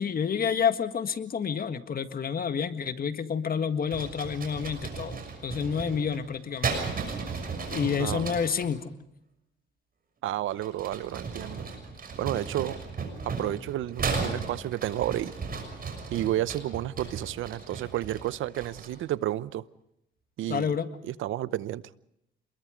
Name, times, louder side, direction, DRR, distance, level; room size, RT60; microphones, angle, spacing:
voice 1, 0.0-6.8 7.7-8.8 20.5-20.9, left 7 dB, 50° left, 10 dB, 1.8 m, -29 dB
sound 1, 3.9-8.7 10.5-19.1, right 4 dB, 45° right, 6.4 m, -35 dB
voice 2, 8.0-8.3 10.2-11.6 12.2-12.8 13.4-15.3 16.1-19.6 20.4-20.7 21.0-21.8, right 14 dB, 80° right, 17 dB, 0.9 m, -31 dB
27.5 x 22.0 x 5.2 m, 0.79 s
cardioid pair, 90°, 20 cm